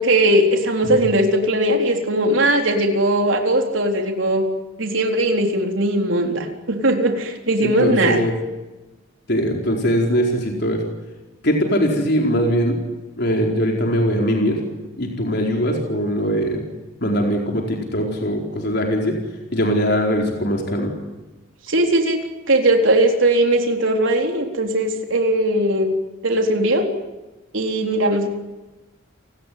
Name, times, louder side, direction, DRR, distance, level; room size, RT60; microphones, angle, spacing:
voice 1, 0.0-4.4 4.8-8.2 21.7-22.2 22.5-25.9 26.2-26.9 27.5-28.3, right 1 dB, 75° right, 3 dB, 4.0 m, -19 dB
voice 2, 7.6-8.3 9.3-10.8 11.4-12.8 13.2-14.6 15.0-16.6 17.0-19.1 19.5-20.9, equal, 55° left, 1 dB, 4.6 m, -21 dB
30.0 x 19.5 x 9.5 m, 1.1 s
head